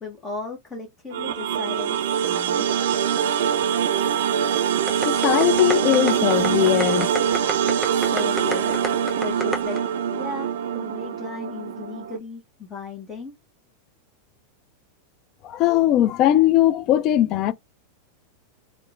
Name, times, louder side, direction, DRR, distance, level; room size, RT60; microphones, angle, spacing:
voice 1, 0.0-2.0 2.2-2.7 7.9-8.8 9.2-9.8 10.1-13.3, left 4 dB, 20° left, 0.7 m, -35 dB
sound 1, 1.1-12.2, right 8 dB, 80° right, 0.4 m, -24 dB
sound 2, 4.9-9.8, right 1 dB, 5° right, 0.9 m, -27 dB
voice 2, 5.0-7.1 15.4-17.5, left 13 dB, 45° left, 0.3 m, -19 dB
2.9 x 2.0 x 2.4 m
hypercardioid pair, 115°, 0 cm